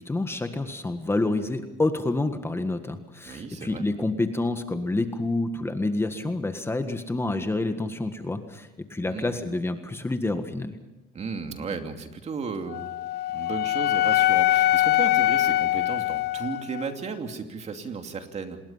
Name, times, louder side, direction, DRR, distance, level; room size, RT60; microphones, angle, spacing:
voice 1, 0.0-10.7, left 2 dB, 15° left, 7 dB, 1.7 m, -28 dB
voice 2, 3.2-3.8 9.0-9.4 11.1-12.9 13.3-18.6, right 5 dB, 40° right, 5 dB, 2.7 m, -34 dB
Wind instrument woodwind instrument, 12.7-16.9, left 15 dB, 70° left, 0.7 m, -23 dB
28.0 x 21.0 x 5.7 m, 1.0 s
cardioid pair, 110°, 17 cm